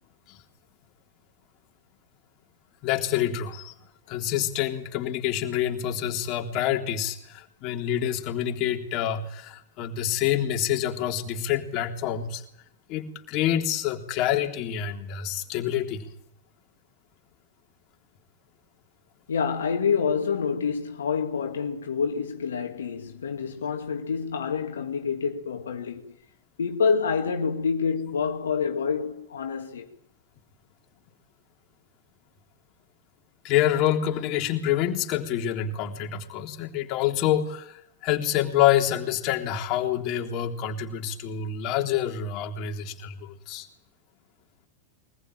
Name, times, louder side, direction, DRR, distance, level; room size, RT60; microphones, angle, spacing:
voice 1, 2.8-3.7 4.1-12.4 12.9-16.1 33.4-43.7, left 10 dB, 40° left, 3.5 m, -27 dB
voice 2, 19.3-26.2 26.6-29.9, left 6 dB, 65° left, 2.4 m, -27 dB
24.0 x 20.0 x 9.2 m
figure-of-eight pair, 90°, 0 cm